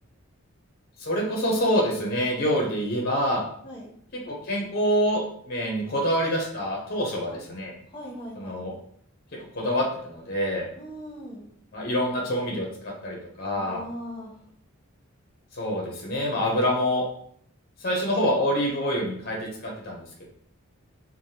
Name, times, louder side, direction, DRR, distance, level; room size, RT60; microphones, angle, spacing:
voice 1, 1.0-3.4 4.3-7.7 8.4-8.7 9.5-10.7 11.7-13.8 15.5-17.1 17.8-20.3, equal, 45° left, -1 dB, 0.6 m, -26 dB
voice 2, 3.6-3.9 7.9-8.6 10.7-11.5 13.5-14.3, equal, 20° left, -5 dB, 1.0 m, -39 dB
3.3 x 2.1 x 2.7 m, 0.63 s
head